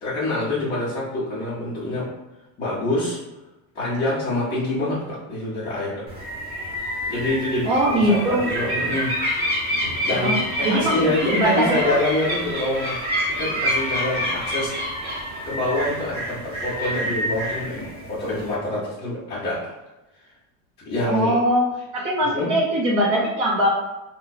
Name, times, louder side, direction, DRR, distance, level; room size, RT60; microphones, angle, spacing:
voice 1, 0.0-2.1 2.6-3.2 3.7-6.0 7.1-9.1 10.0-13.0 13.3-14.7 15.4-19.8 20.8-21.4 22.3-22.5, left 1 dB, 15° left, -11 dB, 0.3 m, -26 dB
sound 1, 6.1-18.5, equal, 20° right, 0.7 m, -27 dB
voice 2, 7.6-8.4 10.1-10.3 10.6-11.9 21.0-21.7 21.9-23.7, right 1 dB, 55° right, -4 dB, 1.0 m, -21 dB
2.4 x 2.2 x 3.9 m, 1.0 s
cardioid pair, 175°, 42 cm